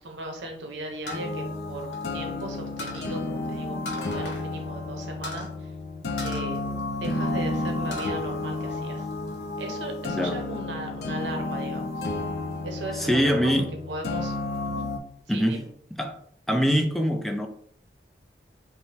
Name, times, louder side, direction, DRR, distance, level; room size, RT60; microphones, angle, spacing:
voice 1, 0.0-5.7 6.2-6.6 7.0-9.1 9.6-12.0 12.6-13.5 13.9-14.3 14.6-14.8 15.3-15.7, right 2 dB, 80° right, 0.7 m, -37 dB
En Drink Dropping, 1.1-2.4 2.8-3.1 3.8-4.5 4.7-4.8 5.2-5.5 6.2-7.3 7.7-8.2 8.6-9.3, left 1 dB, 80° left, 0.9 m, -38 dB
sound 1, 1.1-15.0, left 2 dB, 65° left, 0.4 m, -32 dB
voice 2, 12.9-13.7 15.3-15.6 15.9-16.2 16.5-17.5, equal, ahead, 0.3 m, -24 dB
5.3 x 2.1 x 3.3 m
head